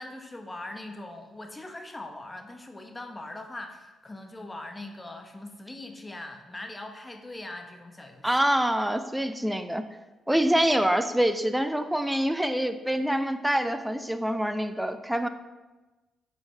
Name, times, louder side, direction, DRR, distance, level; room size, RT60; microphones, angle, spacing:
voice 1, 0.0-8.3, left 2 dB, 20° left, 5 dB, 1.1 m, -41 dB
voice 2, 8.2-9.8 10.3-15.3, equal, 5° right, 10 dB, 0.6 m, -25 dB
8.8 x 5.6 x 3.3 m, 1.2 s
hypercardioid pair, 40°, 0 cm